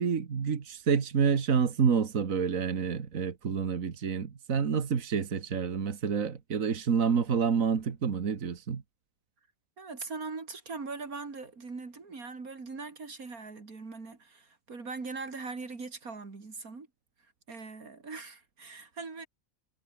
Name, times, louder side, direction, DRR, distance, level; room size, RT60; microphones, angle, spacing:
voice 1, 0.0-8.8, right 6 dB, 70° right, 2.0 m, -28 dB
voice 2, 9.8-16.9 17.2-19.3, right 4 dB, 90° right, 3.5 m, -41 dB
omnidirectional pair, 1.5 m